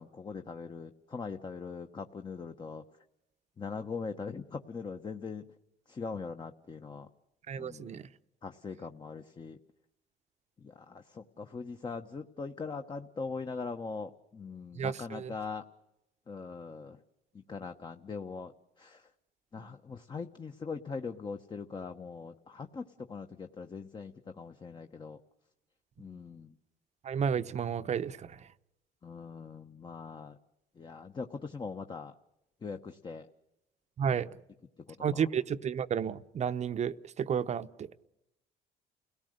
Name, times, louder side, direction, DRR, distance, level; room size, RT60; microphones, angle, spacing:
voice 1, 0.0-2.8 3.6-5.5 5.9-7.1 7.5-8.0 8.4-9.6 10.6-15.6 16.3-17.0 17.3-19.1 19.5-25.2 26.0-26.5 29.0-30.4 30.8-32.1 32.6-33.3 34.9-35.3, left 4 dB, 25° left, 6 dB, 1.0 m, -41 dB
voice 2, 7.5-8.1 14.8-15.3 27.0-28.4 34.0-34.3 35.0-37.9, right 7 dB, 40° right, 13 dB, 0.8 m, -32 dB
30.0 x 18.0 x 6.6 m, 0.90 s
cardioid pair, 110°, 17 cm